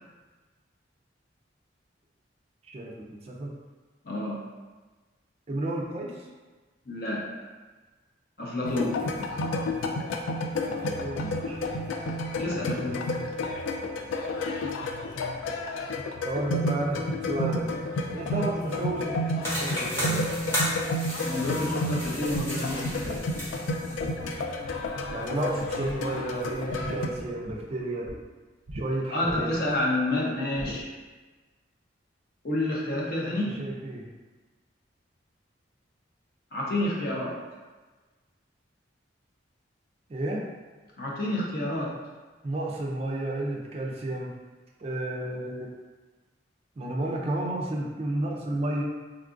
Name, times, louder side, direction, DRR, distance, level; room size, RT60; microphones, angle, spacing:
voice 1, 2.6-3.5 5.5-6.3 9.8-10.0 10.8-11.6 16.2-17.7 18.1-20.3 25.1-28.1 28.7-29.6 33.2-34.1 37.0-37.1 40.1-40.5 42.4-44.4 44.8-45.7 46.8-49.0, right 1 dB, 35° right, -2 dB, 0.3 m, -32 dB
voice 2, 4.0-4.4 6.9-7.2 8.4-9.0 12.4-13.0 21.2-23.2 29.1-30.9 32.4-33.5 36.5-37.3 41.0-41.9, left 1 dB, 50° left, -4 dB, 0.6 m, -29 dB
sound 1, 8.6-27.1, left 1 dB, 90° left, 0.3 m, -31 dB
sound 2, 19.4-24.0, equal, 15° left, 0.9 m, -34 dB
sound 3, 22.0-25.3 25.6-26.2 26.5-28.2 28.7-28.9 29.3-29.8 30.6-30.8, right 1 dB, 85° right, 0.5 m, -41 dB
3.7 x 2.3 x 2.4 m, 1.3 s
head